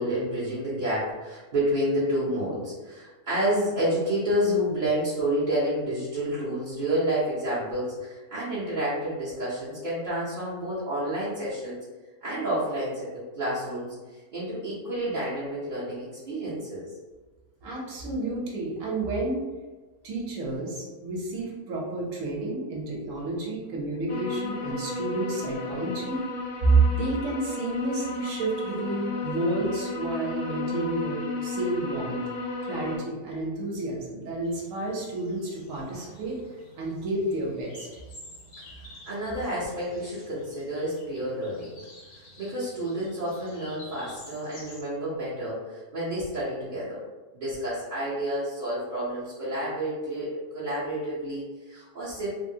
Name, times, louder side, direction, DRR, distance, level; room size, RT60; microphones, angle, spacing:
voice 1, 0.0-11.8 12.2-13.1 13.3-16.9 38.7-41.8 42.4-47.0 47.3-52.3, equal, 50° right, -10 dB, 0.6 m, -29 dB
voice 2, 17.6-19.4 20.0-26.2 26.6-32.2 32.6-36.4 36.8-38.0, right 2 dB, 65° right, -3 dB, 1.1 m, -29 dB
sound 1, 24.1-33.0, left 3 dB, 70° left, 0.7 m, -33 dB
sound 2, 34.4-44.8, equal, 85° left, 1.4 m, -50 dB
3.6 x 2.0 x 2.6 m, 1.3 s
omnidirectional pair, 1.6 m